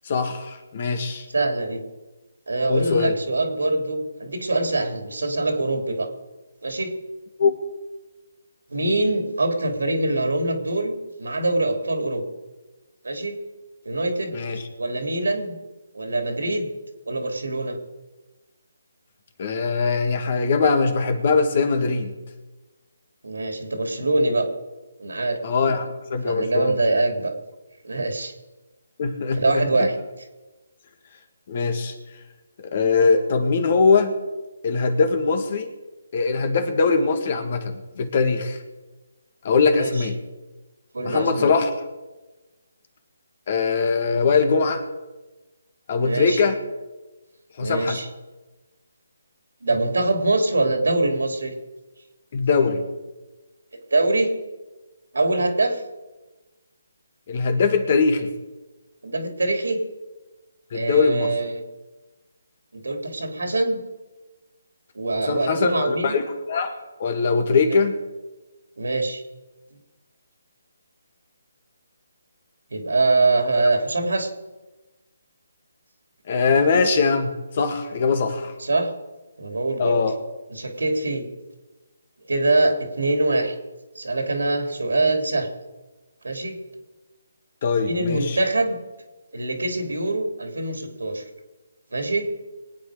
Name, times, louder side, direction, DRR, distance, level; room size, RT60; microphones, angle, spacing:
voice 1, 0.1-1.3 2.7-3.1 7.4-7.5 14.3-14.6 19.4-22.1 25.4-26.8 29.0-29.9 31.5-31.9 32.6-34.1 34.6-35.7 36.1-38.6 39.4-40.2 41.0-41.7 43.5-44.8 45.9-46.6 47.6-48.0 52.3-52.8 57.3-58.3 60.7-61.3 65.1-66.2 66.5-68.0 76.3-78.5 79.8-80.1 87.6-88.4, left 4 dB, 45° left, 8 dB, 1.9 m, -21 dB
voice 2, 1.3-1.8 2.5-6.1 6.6-6.9 8.7-12.2 13.0-13.4 13.8-14.3 14.8-15.6 15.9-16.7 17.1-17.8 23.2-24.5 25.0-25.4 26.2-27.3 27.8-28.3 29.3-30.0 39.8-40.1 40.9-41.5 46.0-46.4 47.6-48.1 49.6-51.5 53.9-54.3 55.1-55.8 59.0-59.8 60.7-61.6 62.7-63.8 64.9-66.2 67.7-67.8 68.8-69.2 72.7-74.3 78.6-78.9 79.4-80.0 80.5-81.3 82.3-83.5 83.9-85.5 86.2-86.6 87.9-88.8 89.3-91.2 91.9-92.3, right 2 dB, 85° right, 5 dB, 3.0 m, -23 dB
22.5 x 9.4 x 5.0 m, 1.1 s
figure-of-eight pair, 155°, 0 cm